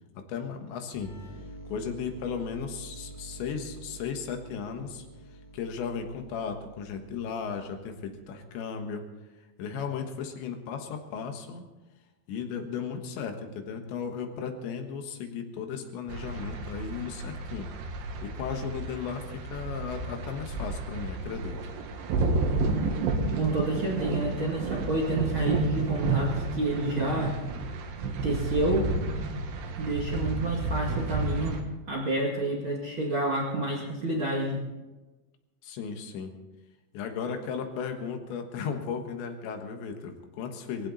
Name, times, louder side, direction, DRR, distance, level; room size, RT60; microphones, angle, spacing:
voice 1, 0.2-1.1 1.7-5.0 5.5-9.0 9.6-11.6 12.3-17.7 18.2-21.6 35.6-36.3 36.9-40.9, left 6 dB, 80° left, 5 dB, 3.8 m, -35 dB
sound 1, 0.9-8.5, right 2 dB, 5° right, 5.9 m, -47 dB
sound 2, 16.1-31.6, right 3 dB, 70° right, 3.6 m, -31 dB
voice 2, 23.3-27.4 28.2-28.9 29.8-31.6 31.9-34.6, right 2 dB, 40° right, -3 dB, 1.9 m, -29 dB
20.5 x 16.0 x 4.2 m, 1.1 s
omnidirectional pair, 5.1 m